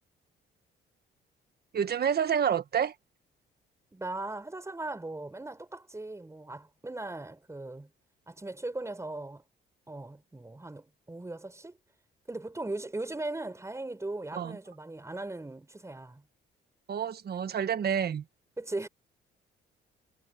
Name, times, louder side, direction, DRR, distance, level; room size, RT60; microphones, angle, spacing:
voice 1, 1.7-2.9 14.3-14.6 16.9-18.2, right 8 dB, 50° right, 1.6 m, -28 dB
voice 2, 3.9-7.9 8.3-9.4 9.9-11.8 12.3-16.2 18.6-18.9, right 2 dB, 15° right, 4.7 m, -38 dB
cardioid pair, 90°, 20 cm